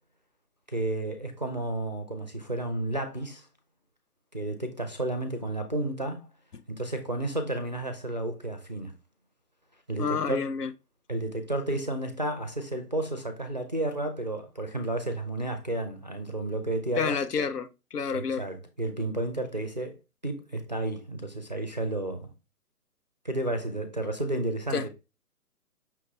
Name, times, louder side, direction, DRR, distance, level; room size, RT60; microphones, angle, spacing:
voice 1, 0.7-3.5 4.3-6.3 6.7-8.9 9.9-10.5 11.1-17.2 18.1-20.0 20.2-22.3 23.2-24.9, right 1 dB, 30° right, 0.4 m, -32 dB
voice 2, 10.0-10.7 17.0-18.4 24.7-24.9, left 6 dB, 80° left, 0.7 m, -29 dB
5.7 x 2.5 x 3.0 m
figure-of-eight pair, 135°, 46 cm